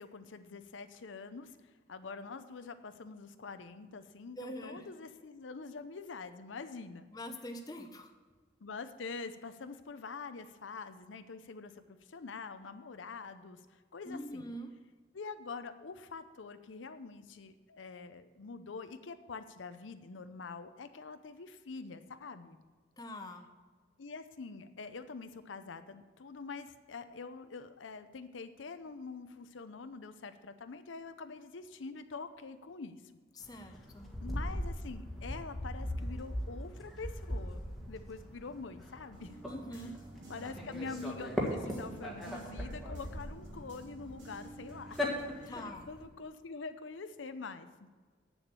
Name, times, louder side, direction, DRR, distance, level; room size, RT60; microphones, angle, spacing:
voice 1, 0.0-7.1 8.6-14.5 15.1-22.6 24.0-33.0 33.5-33.6 34.2-39.4 39.7-39.9 40.3-47.9, left 4 dB, 90° left, 10 dB, 0.6 m, -45 dB
voice 2, 4.4-4.8 7.1-8.1 14.0-14.7 23.0-23.5 33.4-34.1 39.4-40.0 45.5-45.9, equal, 20° left, 5 dB, 0.8 m, -44 dB
sound 1, 33.4-46.0, equal, ahead, 1.6 m, -40 dB
sound 2, 39.1-45.5, right 2 dB, 85° right, 3.1 m, -52 dB
8.6 x 7.1 x 6.8 m, 1.4 s
head